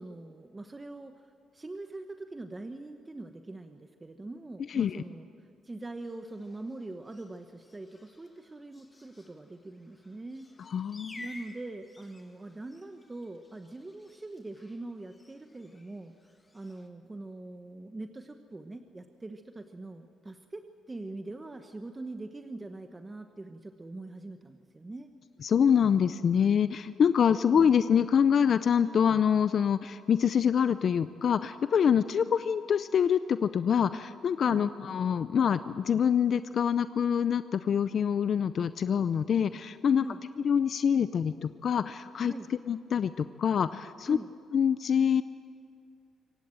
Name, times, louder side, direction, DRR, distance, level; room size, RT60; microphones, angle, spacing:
voice 1, 0.0-5.3 5.6-10.5 11.1-16.1 16.5-25.1 27.5-27.7 34.4-34.6 40.0-40.2 42.2-42.5 44.1-44.3, right 2 dB, 20° right, 7 dB, 1.0 m, -43 dB
voice 2, 4.7-5.0 10.7-11.3 25.4-40.0 40.4-42.3 42.7-44.2 44.5-45.2, left 7 dB, 55° left, 13 dB, 0.5 m, -25 dB
sound 1, 6.0-16.9, left 2 dB, 20° left, 2.1 m, -54 dB
25.5 x 16.5 x 7.7 m, 2.4 s
cardioid pair, 90°, 0 cm